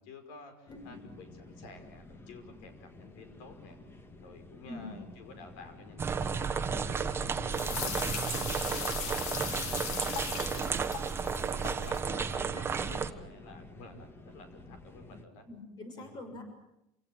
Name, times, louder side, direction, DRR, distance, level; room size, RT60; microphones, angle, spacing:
voice 1, 0.0-3.8 4.2-10.8 11.3-15.5 15.9-16.2, left 3 dB, 80° left, 9 dB, 5.5 m, -52 dB
sound 1, 0.7-15.2, left 2 dB, 20° left, 2.1 m, -51 dB
voice 2, 4.7-5.0 7.7-8.0 12.3-12.9 15.5-16.4, left 2 dB, 35° left, 6 dB, 6.6 m, -45 dB
sound 2, 6.0-13.1, right 6 dB, 20° right, 1.3 m, -33 dB
sound 3, 7.5-12.0, left 7 dB, 60° left, 2.8 m, -38 dB
28.0 x 17.5 x 9.2 m, 0.86 s
cardioid pair, 145°, 12 cm